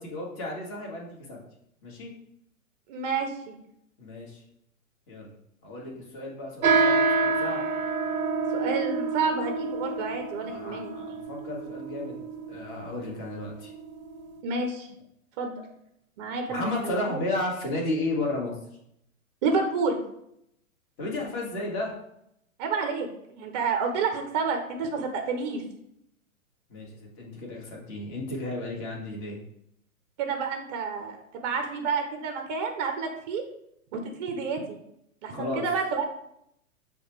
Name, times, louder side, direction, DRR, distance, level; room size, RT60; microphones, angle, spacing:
voice 1, 0.0-1.4 1.8-2.1 4.0-4.4 5.1-5.3 5.6-7.6 10.4-12.2 12.5-13.7 16.5-18.5 21.0-21.9 26.7-29.4 35.3-35.6, left 2 dB, 30° left, -2 dB, 1.4 m, -33 dB
voice 2, 2.9-3.6 8.5-10.9 14.4-14.9 15.4-15.6 16.2-17.2 19.4-20.0 22.6-23.1 23.4-25.6 30.2-33.4 33.9-34.8 35.2-36.0, right 4 dB, 30° right, 4 dB, 0.5 m, -29 dB
sound 1, 6.6-14.4, right 4 dB, 85° right, 0.6 m, -28 dB
6.2 x 2.3 x 3.1 m, 0.76 s
hypercardioid pair, 120°, 42 cm